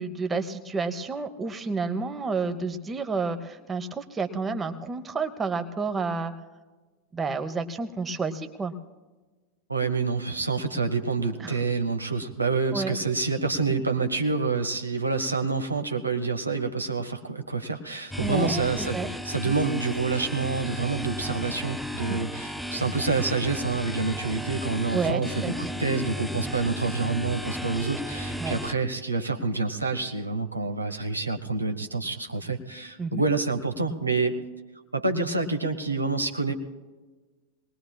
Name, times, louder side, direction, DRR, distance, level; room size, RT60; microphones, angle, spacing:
voice 1, 0.0-6.3 7.1-8.7 11.4-11.6 12.7-13.0 18.2-19.1 19.5-19.6 22.1-22.3 24.9-25.5 28.4-28.6 33.0-33.2, right 4 dB, 15° right, 8 dB, 0.9 m, -30 dB
voice 2, 9.7-25.5 25.8-34.4 34.9-36.5, right 4 dB, 80° right, 6 dB, 0.9 m, -27 dB
sound 1, 18.1-28.7, equal, ahead, 0.5 m, -34 dB
23.0 x 19.5 x 2.3 m, 1.3 s
figure-of-eight pair, 90°, 0 cm